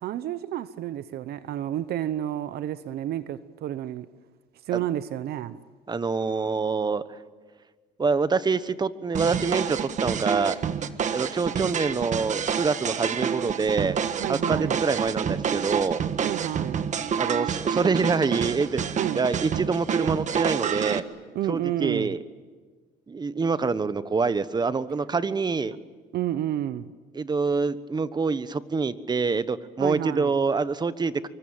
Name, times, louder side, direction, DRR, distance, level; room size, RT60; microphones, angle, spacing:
voice 1, 0.0-4.1 4.7-5.6 14.2-14.8 16.2-16.8 19.0-19.2 21.3-22.1 26.1-26.9 29.8-30.3, right 12 dB, 70° right, 0.9 m, -30 dB
voice 2, 5.9-7.0 8.0-10.6 11.1-14.0 14.3-16.0 17.2-18.8 19.1-21.0 21.5-22.2 23.1-25.8 27.1-31.3, right 4 dB, 25° right, 1.2 m, -26 dB
sound 1, 9.1-21.0, right 7 dB, 45° right, 1.5 m, -28 dB
25.5 x 24.0 x 9.0 m
cardioid pair, 110°, 17 cm